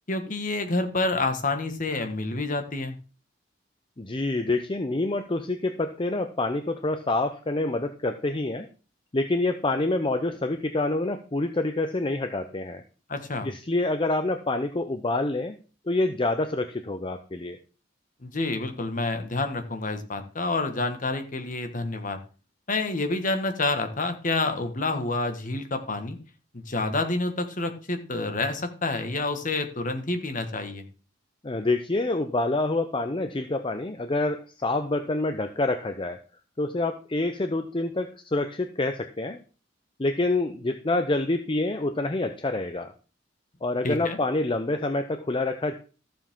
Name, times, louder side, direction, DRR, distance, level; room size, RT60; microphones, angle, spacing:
voice 1, 0.1-2.9 13.1-13.5 18.2-22.2 22.7-26.2 26.5-30.8 43.8-44.2, left 2 dB, 45° left, 7 dB, 1.5 m, -28 dB
voice 2, 4.0-8.7 9.1-12.8 13.4-15.6 15.9-17.6 31.4-36.2 36.6-39.4 40.0-42.9 43.6-45.7, left 2 dB, 25° left, 8 dB, 0.7 m, -27 dB
14.0 x 7.4 x 3.7 m, 0.36 s
head